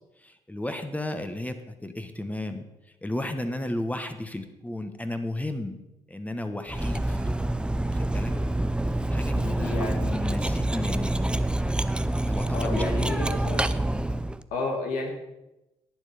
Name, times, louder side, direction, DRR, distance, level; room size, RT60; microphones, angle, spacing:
voice 1, 0.2-2.7 3.0-5.8 6.1-7.5 7.9-8.3 9.1-11.5 11.9-13.3, left 1 dB, 10° left, 7 dB, 1.3 m, -34 dB
Cutlery silverware, 6.7-14.4, right 1 dB, 5° right, 0.5 m, -27 dB
voice 2, 9.3-10.3 12.5-13.9 14.5-15.1, left 3 dB, 75° left, 0 dB, 1.9 m, -32 dB
11.0 x 8.9 x 5.2 m, 0.96 s
hypercardioid pair, 55°, 14 cm